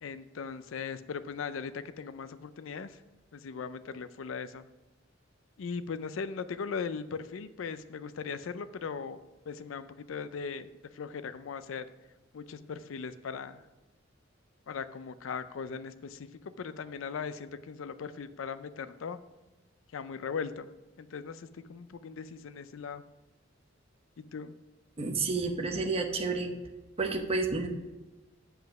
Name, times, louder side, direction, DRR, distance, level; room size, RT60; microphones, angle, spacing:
voice 1, 0.0-3.0 3.3-4.7 5.6-9.2 9.5-11.8 12.3-13.6 14.7-19.2 19.9-20.7 21.0-23.0 24.3-24.5, left 5 dB, 85° left, 13 dB, 0.4 m, -39 dB
voice 2, 25.0-26.5 27.0-27.7, right 3 dB, 30° right, 4 dB, 0.9 m, -30 dB
7.5 x 5.7 x 5.7 m, 1.1 s
head